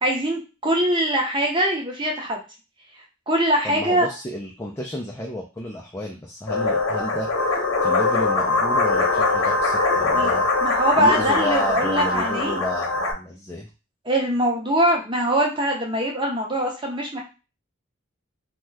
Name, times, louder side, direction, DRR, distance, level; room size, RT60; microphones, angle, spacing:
voice 1, 0.0-2.4 3.3-4.1 10.1-10.3 10.6-12.6 14.0-17.2, right 1 dB, 20° right, 0 dB, 0.7 m, -22 dB
voice 2, 3.6-7.3 7.8-10.5 10.9-13.7, left 1 dB, 10° left, -1 dB, 0.3 m, -31 dB
sound 1, 6.5-13.1, left 3 dB, 65° left, 0.8 m, -22 dB
2.7 x 2.2 x 3.3 m, 0.30 s
head